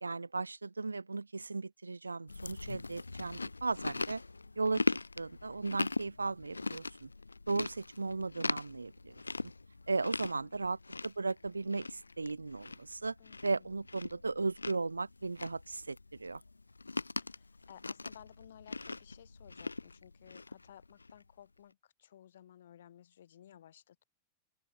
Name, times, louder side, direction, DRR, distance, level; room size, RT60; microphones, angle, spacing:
voice 1, 0.0-4.2 4.6-7.1 7.5-9.1 9.9-13.1 13.4-16.4, right 3 dB, 80° right, 0.5 m, -36 dB
Chewing mastication, 2.3-21.2, left 3 dB, 80° left, 0.5 m, -40 dB
voice 2, 10.2-10.7 13.2-13.8 17.2-24.0, left 10 dB, 60° left, 7.1 m, -57 dB
open air
figure-of-eight pair, 90°, 0 cm